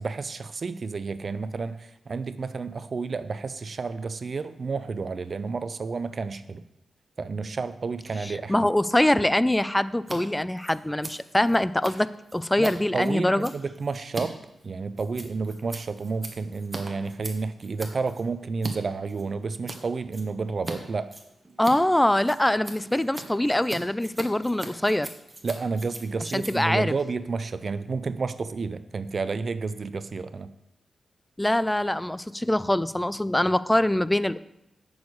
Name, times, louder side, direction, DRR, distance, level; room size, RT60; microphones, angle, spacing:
voice 1, 0.0-6.6 7.2-8.6 12.6-14.4 14.6-21.1 25.4-30.5, right 4 dB, 50° right, 12 dB, 0.5 m, -31 dB
voice 2, 8.5-13.5 21.6-25.1 26.3-26.9 31.4-34.4, left 1 dB, 10° left, 16 dB, 0.3 m, -23 dB
Scissors, 10.0-10.2 10.4-18.7 19.1-19.8 20.1-20.8 21.0-27.8, right 2 dB, 25° right, 1.2 m, -41 dB
8.3 x 6.3 x 4.8 m, 0.85 s
wide cardioid pair, 100°, 0 cm